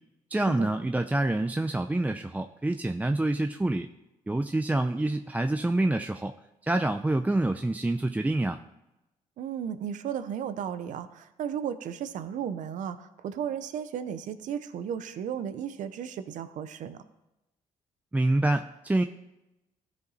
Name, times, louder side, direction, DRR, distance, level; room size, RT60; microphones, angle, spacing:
voice 1, 0.3-3.9 4.3-6.3 6.6-8.6 18.1-19.0, right 2 dB, 10° right, 7 dB, 0.5 m, -27 dB
voice 2, 9.4-17.0, right 8 dB, 70° right, 12 dB, 0.7 m, -34 dB
14.5 x 5.1 x 4.1 m, 0.95 s
supercardioid pair, 65°, 13 cm